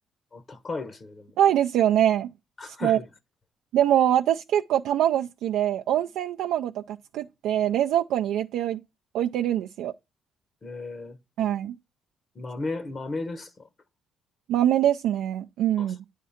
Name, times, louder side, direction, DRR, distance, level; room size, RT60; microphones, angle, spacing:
voice 1, 0.3-1.3 2.6-3.1 10.6-11.2 12.4-13.7 15.8-15.9, left 3 dB, 40° left, 0.8 m, -35 dB
voice 2, 1.4-2.3 2.8-3.0 3.7-8.8 9.1-9.9 11.4-11.7 14.5-16.0, right 11 dB, 90° right, 0.3 m, -23 dB
9.3 x 3.6 x 5.7 m
cardioid pair, 90°, 0 cm